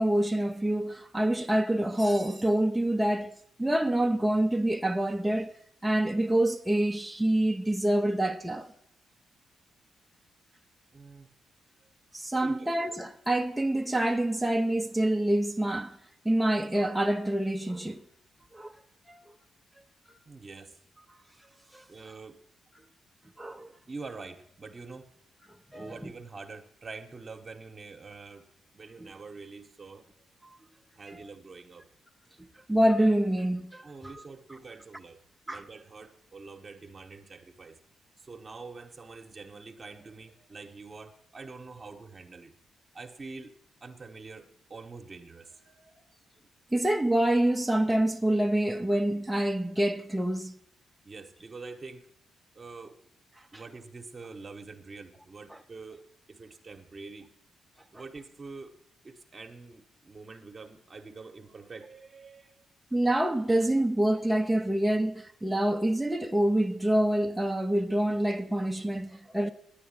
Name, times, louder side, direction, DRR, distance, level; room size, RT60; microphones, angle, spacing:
voice 1, 0.0-3.3 3.6-5.5 5.8-8.7 12.1-16.0 16.2-18.0 18.5-18.7 19.1-19.2 21.7-21.9 23.4-23.7 25.7-26.0 31.1-31.2 32.7-34.1 35.5-35.6 46.7-50.5 53.5-53.6 55.5-55.6 62.9-69.5, right 1 dB, 5° right, 0.7 m, -26 dB
voice 2, 10.9-11.3 11.8-11.9 12.4-12.7 20.2-20.8 21.9-22.4 23.7-25.1 25.7-28.5 28.7-30.1 30.9-31.9 33.8-37.8 38.2-42.5 42.9-43.5 43.8-46.0 51.0-52.1 52.5-53.0 53.5-56.0 56.3-57.3 57.9-58.7 59.0-62.7 69.1-69.5, right 4 dB, 35° right, 1.1 m, -46 dB
10.5 x 9.1 x 8.9 m
cardioid pair, 85°, 0 cm